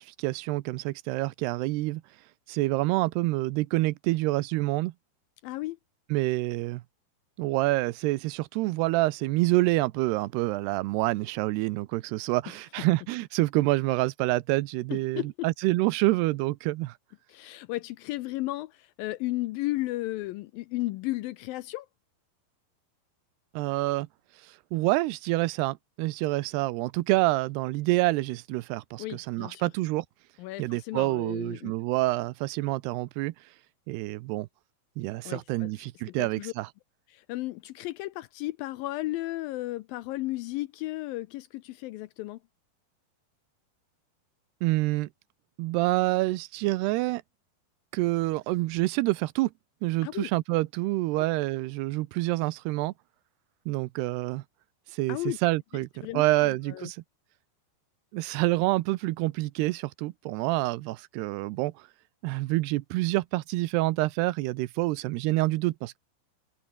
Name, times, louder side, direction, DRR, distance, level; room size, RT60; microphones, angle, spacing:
voice 1, 0.0-2.0 2.5-4.9 6.1-6.8 7.4-16.9 23.5-24.1 24.7-30.1 30.6-33.3 33.9-34.5 35.0-36.7 44.6-45.1 45.6-47.2 47.9-49.5 49.8-52.9 53.7-54.4 54.9-57.0 58.1-61.7 62.2-66.0, right 19 dB, 90° right, 2.8 m, -27 dB
voice 2, 5.4-5.8 14.9-15.5 17.3-21.9 29.0-29.7 30.4-31.7 35.3-35.7 36.1-36.5 37.1-42.4 50.0-50.3 51.2-51.3 55.1-55.4 55.7-56.9, left 18 dB, 80° left, 2.2 m, -34 dB
omnidirectional pair, 4.6 m